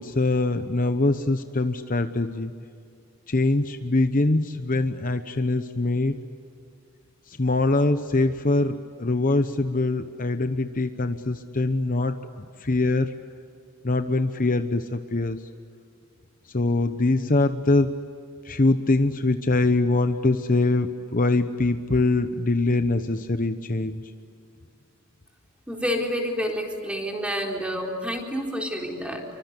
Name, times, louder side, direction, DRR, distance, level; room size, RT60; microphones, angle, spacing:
voice 1, 0.0-2.6 3.3-6.2 7.3-13.1 13.8-15.5 16.5-18.0 18.4-24.1, left 2 dB, 40° left, 9 dB, 0.9 m, -23 dB
voice 2, 25.7-29.2, equal, 5° right, 1 dB, 4.1 m, -28 dB
29.0 x 24.0 x 8.3 m, 2.4 s
head